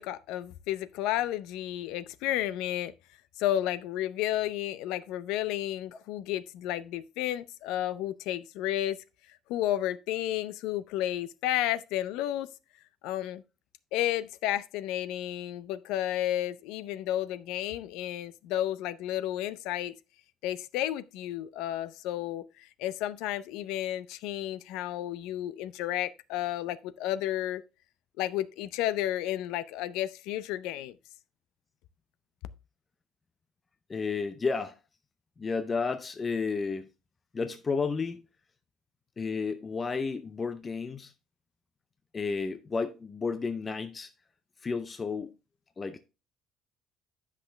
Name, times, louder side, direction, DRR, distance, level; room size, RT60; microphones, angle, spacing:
voice 1, 0.0-2.9 3.4-12.5 13.0-13.4 13.9-20.0 20.4-27.6 28.2-31.0, left 13 dB, 80° left, 0.5 m, -32 dB
voice 2, 33.9-34.8 35.4-36.9 37.3-38.2 39.2-41.1 42.1-44.1 44.6-45.3 45.8-46.0, left 4 dB, 20° left, 0.4 m, -32 dB
10.0 x 5.9 x 3.3 m
cardioid pair, 170°, 0 cm